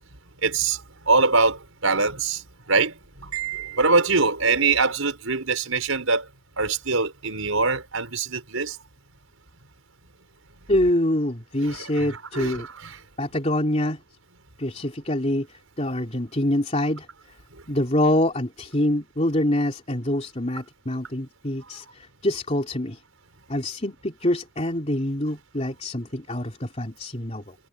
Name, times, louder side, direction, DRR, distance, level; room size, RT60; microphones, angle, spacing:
voice 1, 0.4-2.4 2.7-2.9 3.2-6.2 6.6-8.8 11.6-13.0, right 4 dB, 80° right, 5.3 m, -23 dB
voice 2, 10.7-12.7 13.2-14.0 14.6-15.5 15.8-17.1 17.7-23.0 23.5-27.5, left 1 dB, 30° left, 3.3 m, -25 dB
head